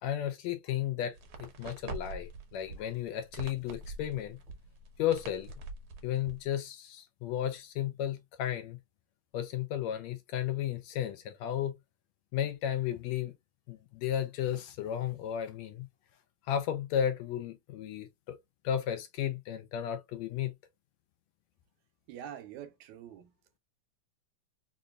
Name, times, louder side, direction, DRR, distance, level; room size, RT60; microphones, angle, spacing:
voice 1, 0.0-4.4 5.0-5.5 6.0-8.8 9.3-11.7 12.3-13.3 13.7-15.9 16.5-18.4 18.6-20.5, left 10 dB, 80° left, 1.7 m, -34 dB
sound 1, 1.1-6.4, right 3 dB, 65° right, 1.4 m, -45 dB
voice 2, 22.1-23.3, right 9 dB, 80° right, 2.0 m, -45 dB
5.1 x 2.6 x 2.3 m
omnidirectional pair, 3.5 m